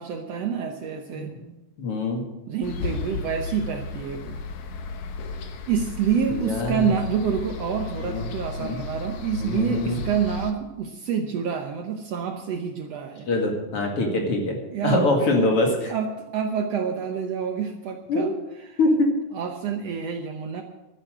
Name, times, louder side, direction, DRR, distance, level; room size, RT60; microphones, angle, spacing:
voice 1, 0.0-1.3 2.5-4.4 5.7-13.3 14.7-15.1 15.9-18.3 18.7-18.8 19.3-20.6, right 7 dB, 65° right, 4 dB, 1.8 m, -27 dB
voice 2, 1.1-1.5 1.8-2.2 6.3-6.9 8.0-8.2 8.6-8.8 9.4-10.0 13.3-14.6 14.8-15.9 18.1-18.3 18.8-19.1, left 2 dB, 50° left, 1 dB, 2.9 m, -23 dB
sound 1, 2.6-10.5, left 4 dB, 70° left, 2.5 m, -34 dB
12.0 x 10.0 x 7.8 m, 1.0 s
omnidirectional pair, 3.6 m